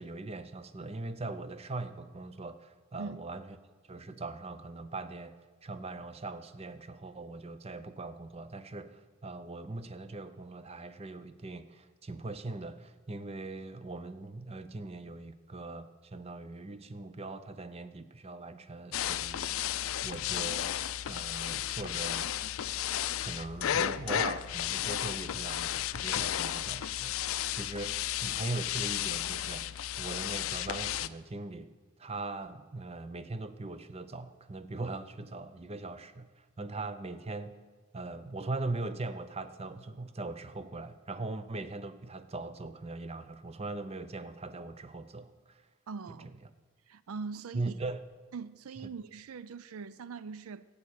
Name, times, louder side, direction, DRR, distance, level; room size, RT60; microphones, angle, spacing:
voice 1, 0.0-3.6 3.9-5.3 5.6-20.8 21.1-22.3 23.2-27.1 27.5-29.7 30.0-31.7 32.0-37.6 37.9-45.7 47.5-48.0, right 2 dB, 30° right, 0.6 m, -40 dB
sound 1, 18.9-31.1, left 11 dB, 70° left, 0.4 m, -33 dB
voice 2, 45.9-46.3 46.9-47.7 48.3-50.7, right 5 dB, 80° right, 0.4 m, -42 dB
13.0 x 8.6 x 8.1 m
head